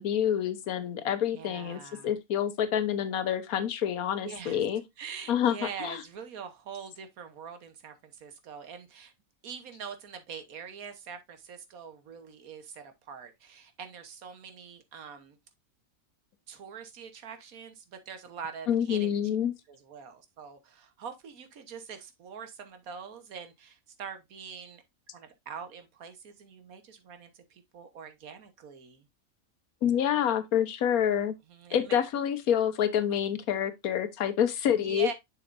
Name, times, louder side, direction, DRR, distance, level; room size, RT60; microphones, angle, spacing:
voice 1, 0.0-4.8 5.3-5.5 5.8-6.0 18.7-19.5 29.8-31.3 31.7-35.1, left 9 dB, 90° left, 1.3 m, -27 dB
voice 2, 1.3-2.1 4.2-4.7 5.0-9.1 9.4-15.4 16.5-19.1 19.7-24.8 25.1-29.1 31.5-32.0 34.7-35.1, right 6 dB, 80° right, 1.5 m, -44 dB
7.2 x 6.3 x 2.5 m
omnidirectional pair, 1.5 m